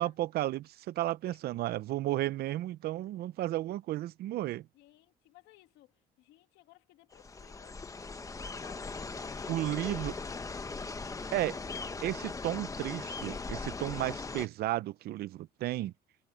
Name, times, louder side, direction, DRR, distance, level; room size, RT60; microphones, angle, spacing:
voice 1, 0.0-4.7 9.5-10.1 11.3-11.6 12.0-15.9, right 15 dB, 70° right, 0.6 m, -33 dB
voice 2, 4.7-5.9 6.2-7.7 8.3-10.5, left 17 dB, 85° left, 1.9 m, -58 dB
sound 1, 7.1-14.5, left 4 dB, 20° left, 1.1 m, -39 dB
cardioid pair, 110°, 17 cm